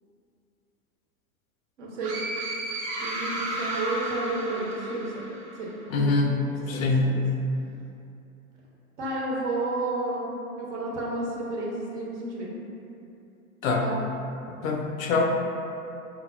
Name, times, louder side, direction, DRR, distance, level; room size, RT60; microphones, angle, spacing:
voice 1, 1.8-2.1 3.0-5.3 5.6-5.7 6.0-6.1 6.4-7.2 9.0-10.3 10.6-12.5 13.8-14.0, right 2 dB, 50° right, -4 dB, 0.9 m, -31 dB
sound 1, 2.0-5.7, right 1 dB, 35° right, 0.5 m, -33 dB
voice 2, 5.9-7.1 13.6-13.9 14.5-15.2, left 3 dB, 65° left, 2 dB, 0.5 m, -24 dB
5.0 x 2.1 x 2.4 m, 2.7 s
figure-of-eight pair, 95°, 44 cm